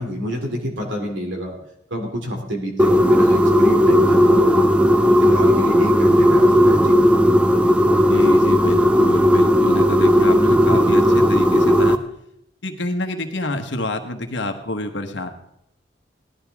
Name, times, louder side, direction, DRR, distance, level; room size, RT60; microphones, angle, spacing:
voice 1, 0.0-1.6 1.9-4.7 5.0-7.0, equal, 85° right, 2 dB, 2.8 m, -27 dB
sound 1, 2.8-12.0, equal, 5° right, 0.5 m, -15 dB
voice 2, 8.1-12.0 12.6-15.3, left 1 dB, 75° left, 5 dB, 1.3 m, -28 dB
17.0 x 12.0 x 3.6 m, 0.75 s
head